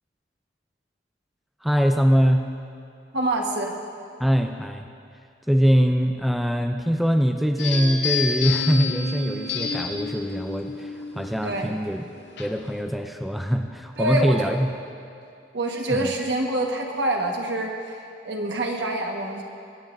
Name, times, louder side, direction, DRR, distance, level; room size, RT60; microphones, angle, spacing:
voice 1, 1.6-2.4 4.2-4.9 5.5-12.0 12.4-14.7 15.9-16.1, equal, ahead, 4 dB, 0.4 m, -22 dB
voice 2, 3.1-3.7 11.4-11.8 14.0-14.5 15.5-19.4, right 1 dB, 75° right, 1 dB, 1.4 m, -26 dB
sound 1, 7.6-12.8, left 5 dB, 75° left, 0.9 m, -30 dB
23.0 x 9.4 x 2.6 m, 2.5 s
head